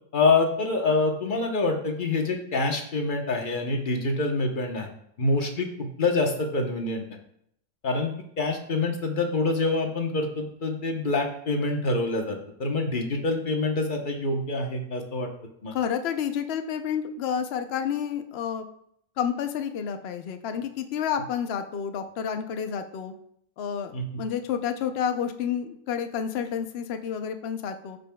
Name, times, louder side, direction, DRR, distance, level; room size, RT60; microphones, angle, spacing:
voice 1, 0.1-4.9 5.2-7.0 7.8-12.3 12.6-15.3 15.6-15.7 23.9-24.0, left 3 dB, 35° left, 3 dB, 1.1 m, -26 dB
voice 2, 15.7-18.6 19.2-23.1 23.6-28.0, left 8 dB, 55° left, 7 dB, 0.8 m, -30 dB
14.5 x 5.2 x 2.3 m, 0.72 s
omnidirectional pair, 1.6 m